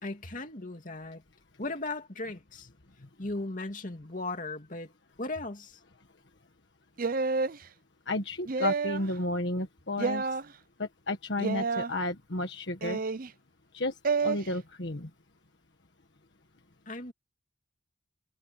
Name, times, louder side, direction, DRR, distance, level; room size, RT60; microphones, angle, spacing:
voice 1, 0.0-1.2 1.6-2.7 3.2-4.9 5.2-5.8 16.9-17.1, left 2 dB, 45° left, 2.7 m, -37 dB
sound 1, 7.0-7.6 8.5-9.1 10.0-10.4 11.4-11.9 12.8-13.3 14.0-14.4, right 4 dB, 50° right, 0.6 m, -29 dB
voice 2, 8.1-10.3 10.8-13.0 13.7-13.9 14.2-15.1, left 2 dB, 65° left, 1.6 m, -32 dB
head